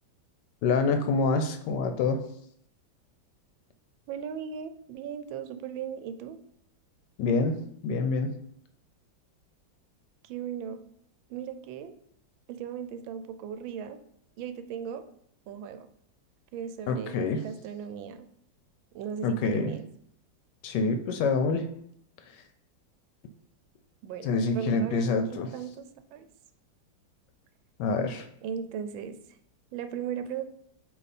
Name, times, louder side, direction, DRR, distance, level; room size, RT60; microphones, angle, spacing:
voice 1, 0.6-2.2 7.2-7.6 7.8-8.3 16.9-17.4 19.2-19.7 20.6-21.7 24.2-25.5 27.8-28.3, left 4 dB, 75° left, 7 dB, 1.1 m, -26 dB
voice 2, 4.1-6.4 10.2-10.9 11.3-11.9 12.5-14.0 14.4-15.1 15.5-15.9 16.5-17.2 17.4-18.3 18.9-19.8 24.0-26.3 28.4-29.2 29.7-30.4, right 8 dB, 90° right, 10 dB, 1.4 m, -37 dB
8.5 x 2.9 x 4.1 m, 0.71 s
omnidirectional pair, 2.1 m